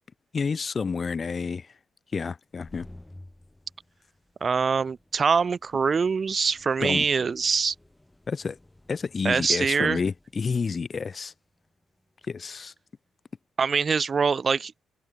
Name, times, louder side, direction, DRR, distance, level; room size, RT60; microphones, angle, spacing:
voice 1, 0.3-1.7 2.1-2.9 6.8-7.1 8.3-8.6 8.9-11.3 12.3-12.7, left 5 dB, 35° left, 0.6 m, -29 dB
sound 1, 2.4-12.8, left 1 dB, 10° left, 4.9 m, -55 dB
voice 2, 4.4-7.7 9.2-10.0 13.6-14.7, right 5 dB, 35° right, 0.4 m, -24 dB
cardioid pair, 130°, 0 cm